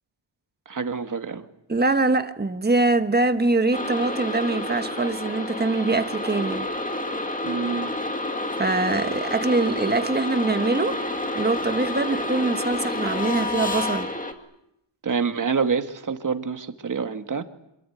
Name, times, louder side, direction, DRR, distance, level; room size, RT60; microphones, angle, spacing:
voice 1, 0.7-1.5 7.4-7.9 15.0-17.4, right 5 dB, 40° right, 1.8 m, -27 dB
voice 2, 1.7-6.7 8.6-11.1 11.3-14.1, right 3 dB, 20° right, 1.3 m, -23 dB
sound 1, 3.7-14.3, left 2 dB, 15° left, 2.4 m, -29 dB
26.5 x 23.5 x 9.4 m
wide cardioid pair, 170°, 49 cm